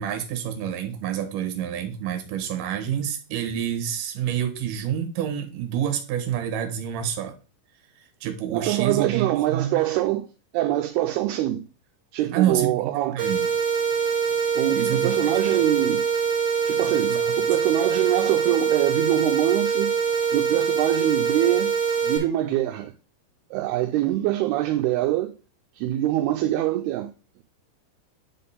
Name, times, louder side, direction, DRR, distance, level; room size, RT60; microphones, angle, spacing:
voice 1, 0.0-7.4 8.0-9.7 12.3-13.5 14.5-15.3 17.1-17.3, right 10 dB, 65° right, 2.4 m, -28 dB
voice 2, 8.5-10.3 10.5-11.7 12.1-13.2 14.6-16.1 16.7-20.0 20.3-21.7 22.0-22.9 23.5-25.4 25.8-27.1, right 14 dB, 85° right, 2.4 m, -24 dB
sound 1, 13.2-22.2, right 6 dB, 35° right, 1.5 m, -24 dB
9.9 x 3.6 x 4.2 m
omnidirectional pair, 4.9 m